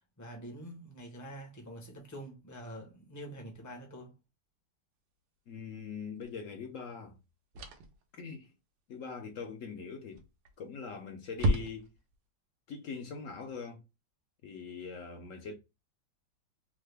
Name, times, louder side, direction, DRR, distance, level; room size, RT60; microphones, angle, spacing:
voice 1, 0.2-4.1, right 1 dB, 20° left, 0.4 m, -46 dB
voice 2, 5.5-7.2 8.2-8.5 8.9-10.2 10.6-11.9 12.7-13.8 14.4-15.5, left 5 dB, 65° left, 0.8 m, -42 dB
sound 1, 6.2-6.4 7.5-8.0 10.1-10.6 10.9-11.0 11.4-12.1, right 1 dB, 85° right, 1.4 m, -32 dB
3.6 x 2.1 x 3.3 m
omnidirectional pair, 1.9 m